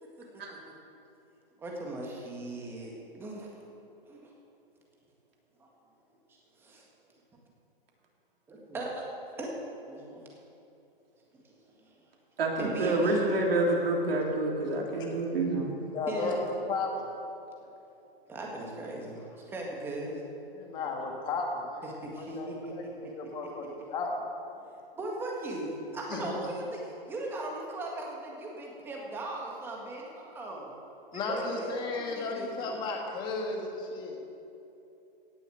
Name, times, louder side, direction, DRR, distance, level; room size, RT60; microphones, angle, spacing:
voice 1, 1.6-3.7 4.0-4.3 5.6-5.7 6.3-6.9 8.5-9.1 9.4-9.5 9.9-10.2 11.3-12.0 12.6-13.2 15.5-15.7 16.1-16.4 17.6-17.7 18.3-20.2 21.8-22.7 23.0-23.1 23.6-23.7 24.6-24.7 24.9-30.7 31.1-32.8, right 1 dB, 10° right, -2 dB, 1.7 m, -39 dB
voice 2, 12.4-15.7, right 2 dB, 75° right, -1 dB, 3.3 m, -28 dB
voice 3, 15.9-17.1 20.5-22.5 23.0-24.2 26.1-26.5 31.1-34.3, left 3 dB, 15° left, 1 dB, 1.5 m, -34 dB
17.0 x 7.0 x 7.9 m, 2.8 s
hypercardioid pair, 165°, 29 cm